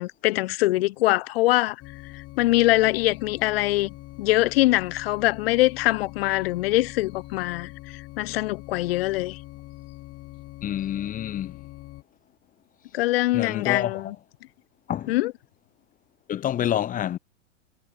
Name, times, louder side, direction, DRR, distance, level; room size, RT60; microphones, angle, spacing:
voice 1, 0.0-1.8 2.0-3.9 4.2-9.4 12.9-14.1 15.1-15.3, left 18 dB, 55° left, 0.6 m, -23 dB
sound 1, 1.8-12.0, left 17 dB, 40° left, 3.4 m, -43 dB
voice 2, 10.6-11.6 13.3-14.1 14.9-15.1 16.3-17.2, left 11 dB, 25° left, 0.8 m, -28 dB
figure-of-eight pair, 95°, 36 cm